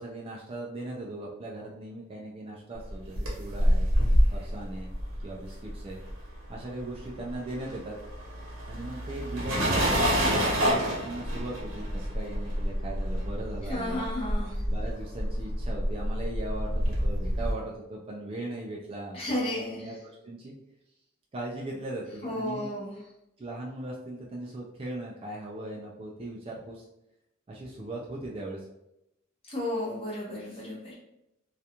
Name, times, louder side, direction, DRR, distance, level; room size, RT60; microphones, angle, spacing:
voice 1, 0.0-4.1 4.3-4.9 5.2-6.0 6.5-8.0 8.7-14.1 14.7-20.5 21.3-22.7 23.4-26.8 27.5-28.6, right 1 dB, 25° right, -2 dB, 0.3 m, -38 dB
sound 1, 2.9-6.5 6.8-17.5, equal, 80° right, 0.8 m, -28 dB
voice 2, 13.6-14.6 19.1-19.9 22.2-22.9 29.5-30.9, left 1 dB, 30° left, -5 dB, 0.8 m, -33 dB
2.4 x 2.2 x 2.8 m, 0.86 s
head